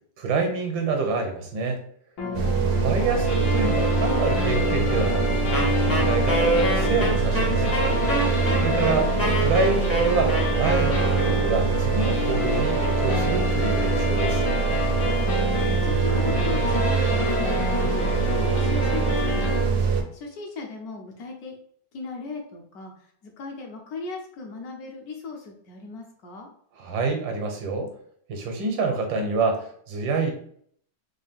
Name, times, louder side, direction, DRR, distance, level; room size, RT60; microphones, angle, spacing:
voice 1, 0.2-1.8 2.7-5.4 5.8-7.8 8.6-14.4 26.8-27.9 28.3-30.3, right 3 dB, 85° right, 4 dB, 1.6 m, -27 dB
sound 1, 2.2-19.6, left 2 dB, 85° left, 2.0 m, -28 dB
voice 2, 2.2-2.8 15.0-19.9 20.1-21.6 21.9-26.5, left 3 dB, 65° left, 1 dB, 1.0 m, -38 dB
sound 2, 2.3-20.0, right 5 dB, 65° right, 0.7 m, -24 dB
Wind instrument woodwind instrument, 5.5-11.6, right 1 dB, 20° left, 0.3 m, -27 dB
4.5 x 2.3 x 3.5 m, 0.63 s
omnidirectional pair, 2.0 m